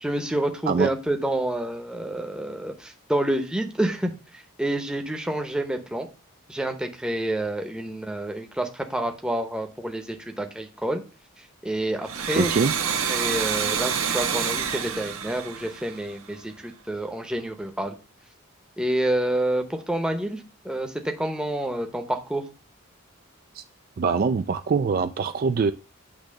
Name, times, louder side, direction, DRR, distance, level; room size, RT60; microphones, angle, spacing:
voice 1, 0.0-6.1 6.5-11.0 11.4-12.6 13.1-18.0 18.8-22.5, right 1 dB, 5° right, 4 dB, 0.8 m, -28 dB
Domestic sounds home sounds, 12.0-16.5, right 7 dB, 75° right, 1.1 m, -28 dB
voice 2, 12.3-12.7 23.5-23.6 24.0-25.7, right 5 dB, 40° right, 10 dB, 0.3 m, -23 dB
8.5 x 3.1 x 6.2 m, 0.34 s
head